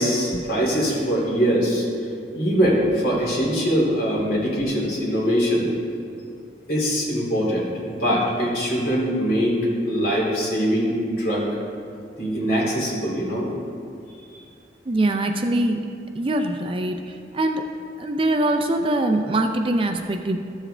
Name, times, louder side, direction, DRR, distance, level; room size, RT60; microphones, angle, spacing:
voice 1, 0.0-1.9 2.3-5.7 6.7-9.6 9.9-11.5 12.2-13.5, equal, 55° left, -5 dB, 2.5 m, -22 dB
voice 2, 14.9-15.8 16.1-17.0 17.3-17.6 18.0-20.4, right 1 dB, 30° right, 5 dB, 0.4 m, -22 dB
13.5 x 7.2 x 3.3 m, 2.4 s
head